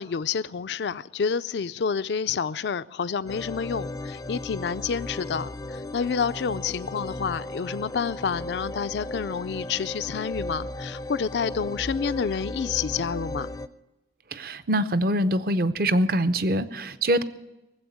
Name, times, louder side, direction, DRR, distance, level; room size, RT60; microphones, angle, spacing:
voice 1, 0.0-13.5, left 6 dB, 80° left, 14 dB, 0.4 m, -29 dB
sound 1, 3.3-13.7, left 1 dB, 20° left, 0.4 m, -36 dB
voice 2, 14.3-17.2, right 1 dB, 55° right, 13 dB, 0.7 m, -24 dB
19.0 x 7.9 x 8.4 m, 0.99 s
head